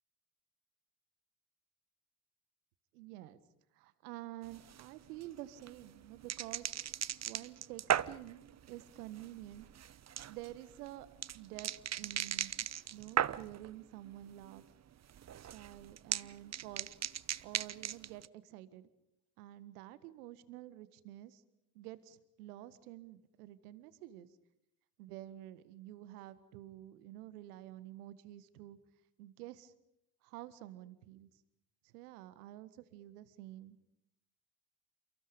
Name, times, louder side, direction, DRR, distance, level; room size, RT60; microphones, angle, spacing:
voice 1, 2.9-3.4 3.7-6.8 7.2-9.7 10.3-11.1 11.3-12.5 12.9-14.6 15.4-17.0 17.4-18.9 19.4-21.4 21.7-24.3 25.0-28.8 29.2-29.7 30.2-31.3 31.8-33.8, right 14 dB, 70° right, 15 dB, 1.7 m, -49 dB
sound 1, 4.4-13.7 14.0-14.6 14.9-18.3, right 10 dB, 35° right, 0.9 m, -38 dB
30.0 x 29.0 x 5.3 m, 0.80 s
figure-of-eight pair, 50°, 46 cm